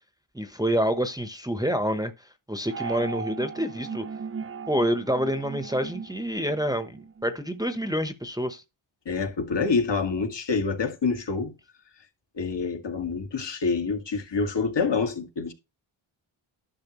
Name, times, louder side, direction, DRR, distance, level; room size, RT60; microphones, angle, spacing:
voice 1, 0.3-2.1 2.5-4.0 4.7-8.6, equal, 10° right, 1.0 m, -27 dB
sound 1, 2.7-7.3, right 6 dB, 30° right, 0.5 m, -37 dB
voice 2, 9.1-11.5 12.4-15.5, left 4 dB, 55° left, 1.8 m, -27 dB
11.0 x 6.3 x 3.1 m
cardioid pair, 80°, 49 cm